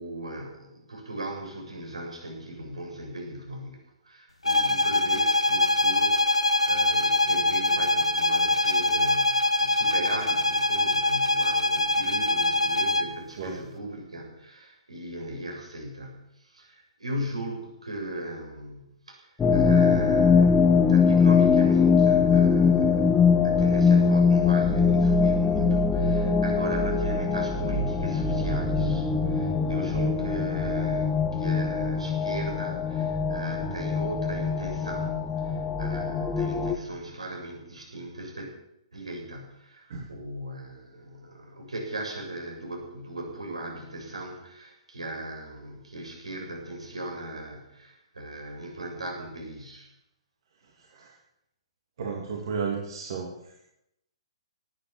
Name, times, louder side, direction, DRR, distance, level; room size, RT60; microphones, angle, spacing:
voice 1, 0.0-38.5 38.9-49.9, right 1 dB, 75° right, 0 dB, 7.1 m, -38 dB
sound 1, 4.4-13.2, left 2 dB, 80° left, 1.1 m, -23 dB
sound 2, 19.4-36.8, left 5 dB, 10° left, 1.9 m, -22 dB
voice 2, 52.0-53.3, right 6 dB, 50° right, -1 dB, 2.9 m, -33 dB
18.0 x 10.5 x 7.1 m, 0.79 s
figure-of-eight pair, 120°, 3 cm